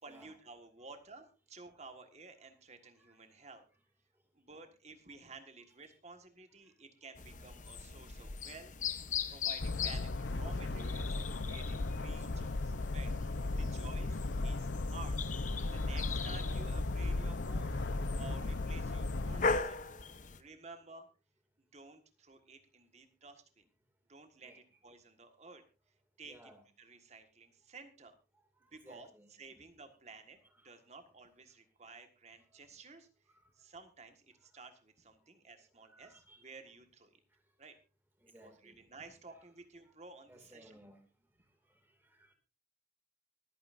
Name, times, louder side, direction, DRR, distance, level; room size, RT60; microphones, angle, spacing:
voice 1, 0.0-3.7 4.3-8.7 9.0-13.1 13.5-15.2 15.5-17.8 18.1-19.8 20.4-21.1 21.7-23.7 24.1-25.6 26.2-26.5 26.8-28.1 28.7-29.1 29.4-33.1 33.6-37.2 37.6-37.7 38.4-40.8, right 3 dB, 40° right, 7 dB, 1.7 m, -53 dB
sound 1, 7.2-20.4, left 5 dB, 45° left, 0.8 m, -41 dB
sound 2, 9.6-19.6, left 2 dB, 80° left, 0.7 m, -36 dB
voice 2, 13.5-13.8 15.7-15.9 16.6-16.7 24.4-24.8 26.3-26.6 28.3-29.3 30.4-30.7 32.3-32.4 33.3-33.4 34.4-34.7 35.8-36.5 38.2-38.8 39.9-40.0 40.3-41.0 41.6-42.3, right 1 dB, 10° right, 4 dB, 2.4 m, -61 dB
24.5 x 9.2 x 2.6 m, 0.32 s
head